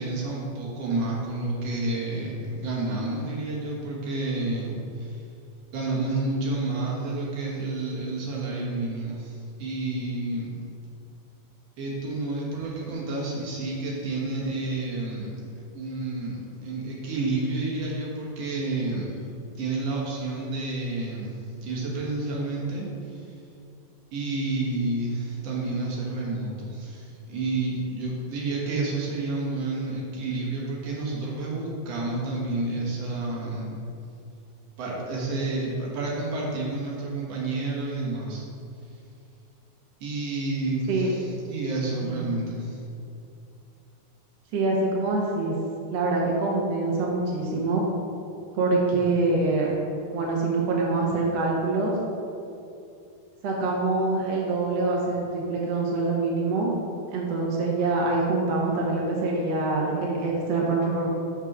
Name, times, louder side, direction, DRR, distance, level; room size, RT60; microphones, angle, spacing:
voice 1, 0.0-5.2 5.7-10.5 11.8-15.3 15.7-19.2 19.6-23.2 24.1-33.8 34.8-38.4 40.0-42.8, right 2 dB, 55° right, -4 dB, 2.0 m, -30 dB
voice 2, 42.0-42.4 44.5-45.5 45.9-47.8 48.5-49.7 50.1-52.0 53.4-56.8 57.1-61.1, right 3 dB, 80° right, -3 dB, 1.5 m, -25 dB
6.2 x 5.9 x 6.0 m, 2.6 s
omnidirectional pair, 4.3 m